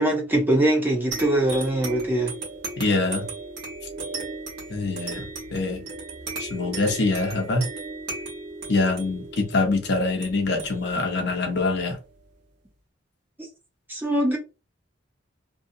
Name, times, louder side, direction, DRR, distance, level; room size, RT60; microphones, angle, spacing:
voice 1, 0.0-2.3 13.9-14.4, right 1 dB, 10° right, 0.6 m, -22 dB
sound 1, 1.1-12.2, right 3 dB, 55° right, 1.1 m, -36 dB
voice 2, 2.8-3.3 4.7-5.8 6.4-7.7 8.7-12.0, left 3 dB, 55° left, 0.7 m, -24 dB
2.7 x 2.3 x 2.6 m
head